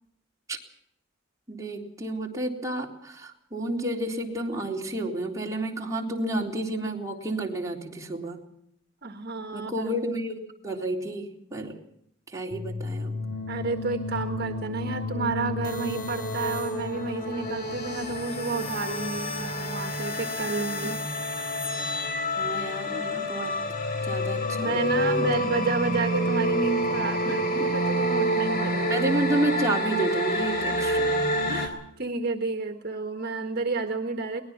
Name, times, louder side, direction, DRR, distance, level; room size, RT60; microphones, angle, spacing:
voice 1, 1.5-8.4 9.5-11.8 12.3-13.2 20.8-20.9 22.4-23.5 24.0-25.4 27.2-27.7 28.9-31.2, right 1 dB, 15° right, -1 dB, 3.8 m, -31 dB
voice 2, 9.0-9.9 13.5-21.0 24.6-29.0 30.7-31.0 31.5-34.4, right 3 dB, 55° right, 6 dB, 1.6 m, -31 dB
sound 1, 12.5-31.7, equal, 50° left, 3.8 m, -28 dB
23.0 x 19.5 x 6.0 m, 0.71 s
head